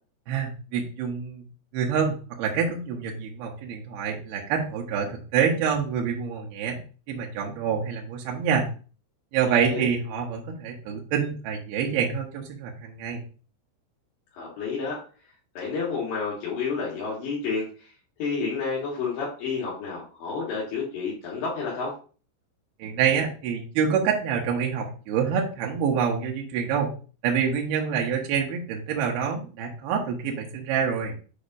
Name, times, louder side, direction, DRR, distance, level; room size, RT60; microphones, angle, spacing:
voice 1, 0.3-1.4 1.7-6.8 7.1-8.7 9.3-13.2 22.8-26.9 27.2-31.1, right 7 dB, 75° right, 0 dB, 2.3 m, -26 dB
voice 2, 9.5-9.9 14.3-15.0 15.6-17.9 18.2-21.9, left 4 dB, 70° left, -6 dB, 3.9 m, -30 dB
8.5 x 5.2 x 2.5 m, 0.38 s
omnidirectional pair, 5.6 m